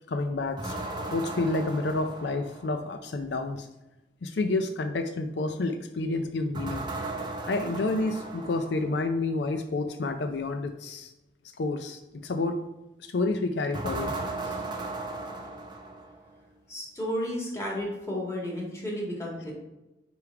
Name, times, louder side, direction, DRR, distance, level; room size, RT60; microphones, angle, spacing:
voice 1, 0.1-0.8 1.1-3.7 4.2-6.9 7.5-11.1 11.6-12.6 13.1-14.1 14.4-14.6, left 2 dB, 80° left, 7 dB, 0.5 m, -29 dB
sound 1, 0.6-2.9 6.5-9.1 13.7-16.4, right 2 dB, 25° right, 0.7 m, -36 dB
voice 2, 16.7-19.5, equal, 15° left, -4 dB, 1.8 m, -32 dB
5.0 x 4.8 x 4.7 m, 0.97 s
head